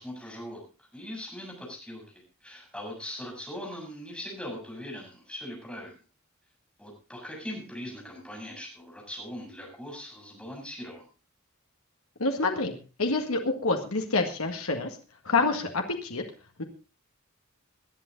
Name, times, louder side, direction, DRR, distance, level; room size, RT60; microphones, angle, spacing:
voice 1, 0.0-5.9 6.8-11.0, equal, 5° left, -1 dB, 7.1 m, -40 dB
voice 2, 12.2-15.0 15.2-16.2 16.6-16.7, left 3 dB, 85° left, 3 dB, 1.8 m, -27 dB
19.5 x 11.0 x 3.9 m, 0.33 s
head